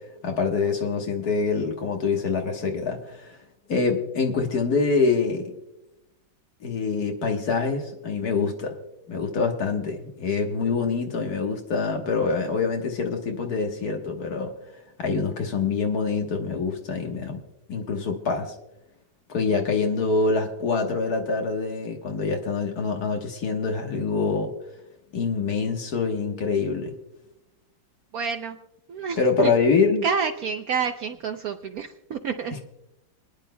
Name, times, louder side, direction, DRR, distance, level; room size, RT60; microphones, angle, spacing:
voice 1, 0.2-3.4 3.7-5.5 6.6-8.8 9.1-14.5 15.0-17.4 17.7-18.5 19.3-24.5 25.1-26.9 29.2-30.0, left 4 dB, 55° left, 3 dB, 1.7 m, -25 dB
voice 2, 28.1-28.6 28.9-29.5 30.0-32.6, right 6 dB, 70° right, 7 dB, 0.9 m, -28 dB
29.0 x 10.0 x 2.2 m, 0.90 s
omnidirectional pair, 2.0 m